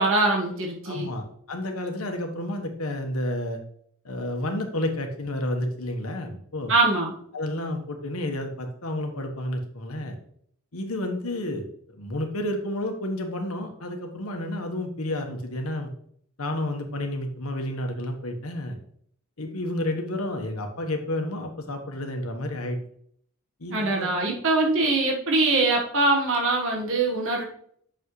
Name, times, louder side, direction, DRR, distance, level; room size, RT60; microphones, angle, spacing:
voice 1, 0.0-1.1 6.7-7.1 23.7-27.4, right 2 dB, 65° right, 0 dB, 1.4 m, -23 dB
voice 2, 0.8-3.6 4.0-6.7 7.3-10.2 10.7-15.9 16.4-18.8 19.4-22.8 23.6-24.4, left 1 dB, 85° left, 4 dB, 1.3 m, -31 dB
8.3 x 6.5 x 3.2 m, 0.64 s
head